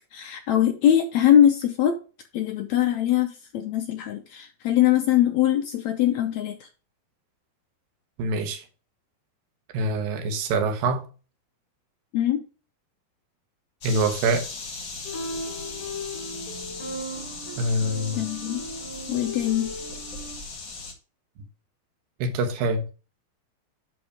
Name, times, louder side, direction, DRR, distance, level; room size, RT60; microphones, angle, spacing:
voice 1, 0.1-2.0 2.3-6.7 12.1-12.4 18.2-18.6 19.1-19.7, left 11 dB, 80° left, 1.7 m, -22 dB
voice 2, 8.2-8.6 9.7-11.0 13.8-14.5 17.6-18.2 22.2-22.9, right 2 dB, 75° right, 2.9 m, -25 dB
sound 1, 13.8-20.9, left 3 dB, 40° left, 1.9 m, -38 dB
sound 2, 15.1-20.4, equal, 60° left, 4.2 m, -37 dB
10.5 x 4.0 x 5.1 m
omnidirectional pair, 4.1 m